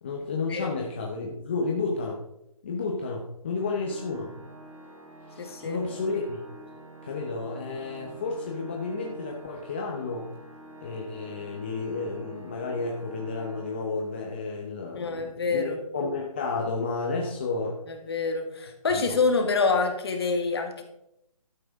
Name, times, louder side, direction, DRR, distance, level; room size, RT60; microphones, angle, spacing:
voice 1, 0.0-2.2 2.6-4.3 5.3-6.4 7.0-10.3 10.8-17.8 18.9-19.2, left 3 dB, 20° left, 0 dB, 0.7 m, -31 dB
Organ, 3.5-14.4, right 1 dB, 55° right, 2.7 m, -47 dB
voice 2, 5.4-5.8 14.9-15.8 17.9-20.8, left 4 dB, 45° left, 5 dB, 1.9 m, -26 dB
12.5 x 9.4 x 3.6 m, 0.81 s
hypercardioid pair, 170°, 19 cm